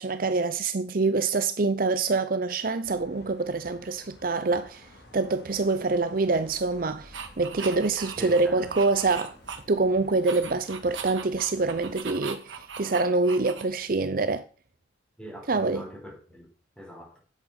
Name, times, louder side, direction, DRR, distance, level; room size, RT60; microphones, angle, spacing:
voice 1, 0.0-4.9 5.1-9.4 9.7-14.4 15.5-15.8, right 3 dB, 50° right, 0.6 m, -25 dB
sound 1, 2.8-12.0, left 1 dB, 60° left, 2.8 m, -52 dB
sound 2, 7.1-9.9 10.2-13.9, right 6 dB, 85° right, 2.0 m, -40 dB
voice 2, 8.2-8.7 15.2-16.5 16.8-17.2, equal, 5° left, 4.1 m, -42 dB
9.9 x 8.2 x 5.5 m
head